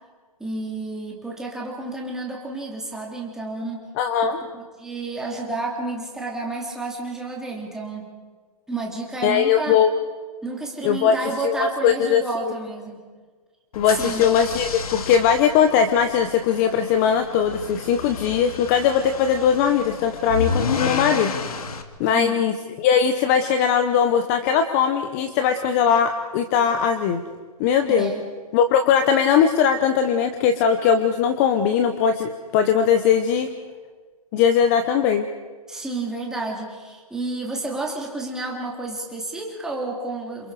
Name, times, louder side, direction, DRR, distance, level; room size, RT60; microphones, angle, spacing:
voice 1, 0.4-3.8 4.2-8.1 8.7-9.8 10.4-13.0 13.9-14.3 22.1-22.4 27.9-28.3 35.7-40.5, right 2 dB, 5° right, -1 dB, 2.9 m, -31 dB
voice 2, 4.0-4.4 9.2-9.9 10.8-11.2 11.4-12.5 13.7-21.7 22.0-27.2 27.6-28.1 28.5-33.5 34.3-35.3, left 7 dB, 25° left, 9 dB, 0.9 m, -20 dB
sound 1, 13.7-21.8, left 5 dB, 65° left, 2.3 m, -31 dB
28.0 x 27.0 x 4.9 m, 1.5 s
hypercardioid pair, 155°, 20 cm